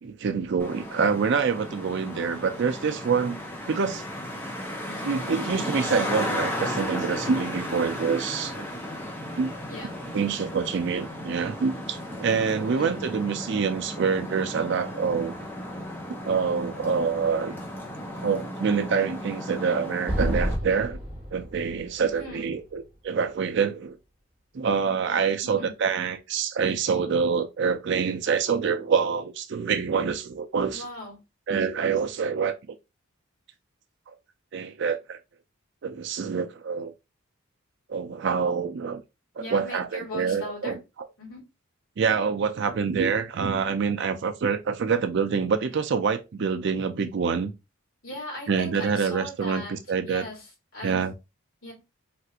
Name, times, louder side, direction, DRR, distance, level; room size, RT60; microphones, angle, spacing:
voice 1, 0.0-3.4 3.7-4.0 5.0-8.5 9.4-9.6 10.1-15.3 16.2-17.5 18.2-21.0 21.3-24.0 24.5-30.9 31.5-32.8 34.1-34.2 34.5-35.2 35.8-36.9 37.9-39.0 39.5-40.8 42.0-47.5 48.5-50.3 50.8-51.1, right 6 dB, 55° right, 0.4 m, -26 dB
Traffic noise roadway noise, 0.6-20.6, left 1 dB, 10° left, 0.7 m, -35 dB
voice 2, 12.6-13.0 22.2-22.5 25.4-25.7 30.7-31.2 39.4-40.8 41.2-41.4 48.0-49.8 50.1-50.5 50.7-51.0 51.6-51.7, left 1 dB, 65° left, 1.9 m, -38 dB
Explosion, 20.1-23.4, equal, 5° right, 1.1 m, -31 dB
3.3 x 2.4 x 2.7 m
head